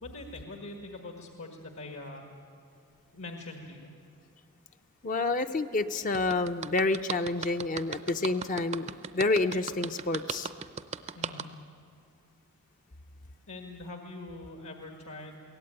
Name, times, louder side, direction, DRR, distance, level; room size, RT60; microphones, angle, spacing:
voice 1, 0.0-2.3 3.1-3.9 11.1-11.5 13.5-15.4, left 2 dB, 70° left, 2 dB, 1.7 m, -43 dB
voice 2, 5.0-8.9 9.1-10.5, left 3 dB, 35° left, 8 dB, 0.6 m, -28 dB
sound 1, 6.1-11.4, right 6 dB, 30° right, 0.5 m, -36 dB
23.0 x 17.0 x 8.9 m, 2.3 s
head